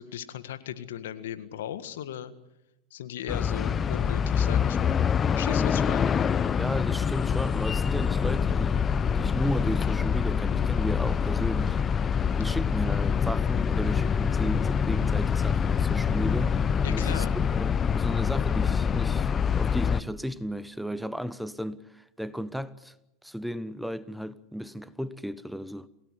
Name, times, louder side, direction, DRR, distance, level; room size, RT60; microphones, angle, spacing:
voice 1, 0.0-2.3 2.9-5.1 5.3-6.1 16.8-17.4, left 10 dB, 75° left, 1.7 m, -37 dB
sound 1, 3.3-20.0, left 7 dB, 30° left, 0.9 m, -25 dB
voice 2, 6.6-8.8 9.1-11.8 12.1-22.9 23.2-25.9, equal, ahead, 1.1 m, -34 dB
28.0 x 17.0 x 8.2 m
hypercardioid pair, 85°, 0 cm